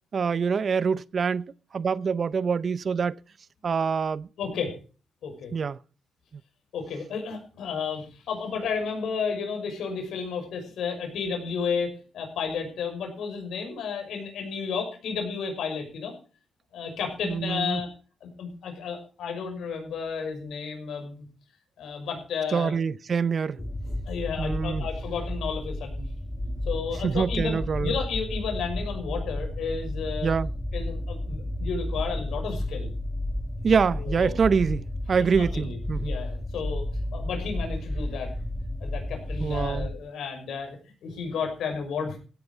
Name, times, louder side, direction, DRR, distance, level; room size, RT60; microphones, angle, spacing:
voice 1, 0.1-3.2 3.6-4.3 5.5-5.8 17.2-17.8 22.5-23.6 24.4-24.9 27.0-28.0 30.2-30.5 33.6-36.1 39.4-39.9, right 6 dB, 50° right, 0.6 m, -25 dB
voice 2, 4.4-4.7 5.2-5.5 6.7-16.1 16.7-17.9 18.2-21.3 21.8-22.7 23.6-26.1 26.7-30.3 30.7-32.9 34.0-34.4 35.4-36.8 37.1-38.3 38.8-40.8 41.0-42.2, left 5 dB, 80° left, 6.0 m, -32 dB
sound 1, 23.6-40.0, left 1 dB, 10° left, 1.5 m, -32 dB
16.5 x 9.5 x 4.6 m
cardioid pair, 85°, 0 cm